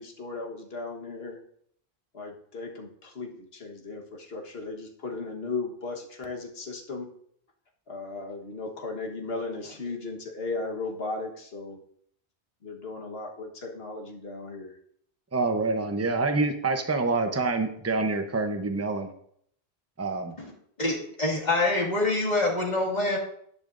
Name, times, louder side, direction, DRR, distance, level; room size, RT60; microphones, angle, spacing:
voice 1, 0.0-1.4 2.1-7.1 7.9-11.8 12.6-14.8, left 3 dB, 70° left, 1 dB, 1.7 m, -36 dB
voice 2, 15.3-19.1 20.0-20.3, right 3 dB, 15° right, 6 dB, 0.8 m, -26 dB
voice 3, 20.8-23.2, left 2 dB, 40° left, -2 dB, 2.4 m, -25 dB
12.0 x 10.5 x 2.6 m, 0.67 s
omnidirectional pair, 1.1 m